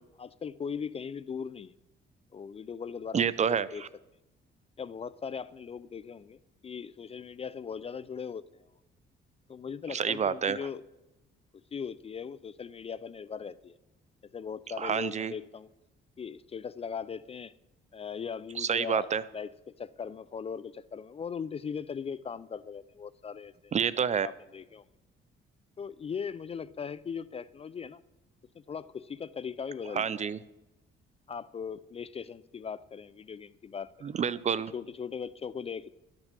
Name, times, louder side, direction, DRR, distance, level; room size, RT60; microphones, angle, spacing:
voice 1, 0.2-1.7 2.3-3.2 3.5-3.8 4.8-8.7 9.5-10.8 11.7-13.8 14.3-15.7 16.2-17.5 17.9-19.5 19.8-23.7 24.2-24.8 25.8-28.0 28.5-30.2 31.3-33.9 34.7-35.9, left 6 dB, 30° left, 18 dB, 0.3 m, -39 dB
voice 2, 3.1-3.9 9.9-10.6 14.8-15.3 18.6-19.2 23.7-24.3 30.0-30.4 34.0-34.7, right 7 dB, 35° right, 18 dB, 0.4 m, -28 dB
12.0 x 6.0 x 6.7 m, 0.98 s
cardioid pair, 90°, 20 cm